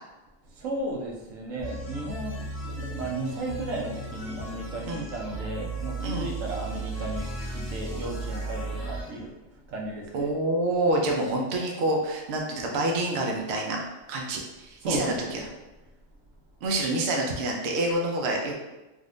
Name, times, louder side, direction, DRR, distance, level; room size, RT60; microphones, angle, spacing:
voice 1, 0.4-10.3 14.8-15.5, right 2 dB, 85° right, -1 dB, 1.1 m, -35 dB
sound 1, 1.6-9.1, right 2 dB, 20° right, 0.7 m, -35 dB
voice 2, 6.0-6.3 10.1-13.8 14.1-15.4 16.6-18.5, right 2 dB, 65° right, 0 dB, 0.8 m, -27 dB
3.6 x 2.5 x 2.4 m, 1.1 s
omnidirectional pair, 1.3 m